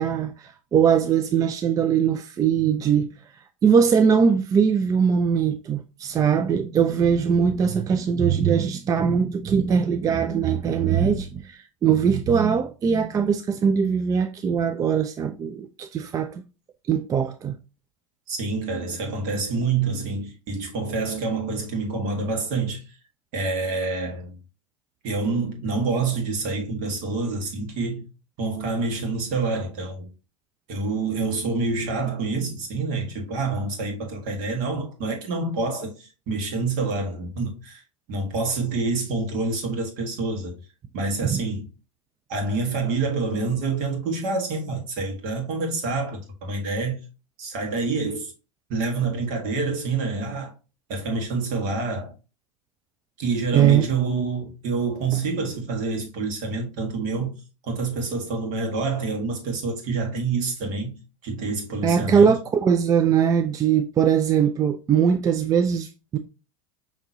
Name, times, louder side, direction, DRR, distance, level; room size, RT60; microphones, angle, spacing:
voice 1, 0.0-3.1 3.6-16.4 16.9-17.6 41.2-41.4 53.5-53.9 61.8-66.2, right 7 dB, 20° right, 0.3 m, -21 dB
voice 2, 18.3-22.9 23.3-24.4 25.0-28.1 28.4-30.1 30.7-37.8 38.1-40.6 40.9-41.6 42.3-47.0 47.4-48.3 48.7-50.5 50.9-52.1 53.2-57.3 57.6-61.0 61.2-62.3, right 3 dB, 50° right, 1.6 m, -27 dB
5.8 x 2.9 x 2.7 m
hypercardioid pair, 95°, 17 cm